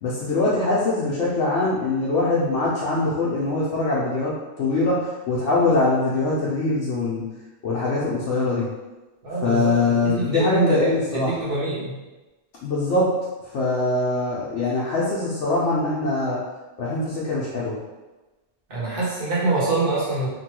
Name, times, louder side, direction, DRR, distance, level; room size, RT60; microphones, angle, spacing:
voice 1, 0.0-7.2 7.6-8.7 9.4-11.3 12.6-13.1 13.5-16.4 16.8-17.8, left 2 dB, 80° left, -7 dB, 0.9 m, -23 dB
voice 2, 9.2-12.0 18.7-20.3, right 3 dB, 50° right, -8 dB, 1.1 m, -25 dB
3.0 x 2.2 x 2.9 m, 1.1 s
omnidirectional pair, 1.2 m